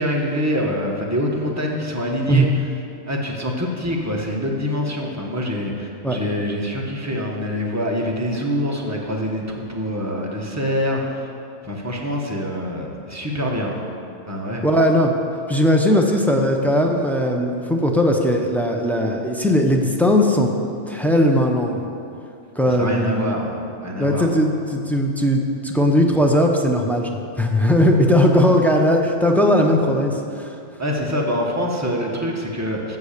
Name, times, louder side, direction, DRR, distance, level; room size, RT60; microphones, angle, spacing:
voice 1, 0.0-2.5 3.1-11.3 11.6-13.9 14.3-14.7 22.6-23.5 23.8-24.3 28.3-28.4 30.8-33.0, equal, 15° right, -1 dB, 1.1 m, -25 dB
voice 2, 14.6-15.1 15.5-20.5 20.9-21.8 22.6-23.3 24.0-30.5, equal, ahead, 1 dB, 0.6 m, -18 dB
8.2 x 7.0 x 6.7 m, 2.5 s
omnidirectional pair, 1.2 m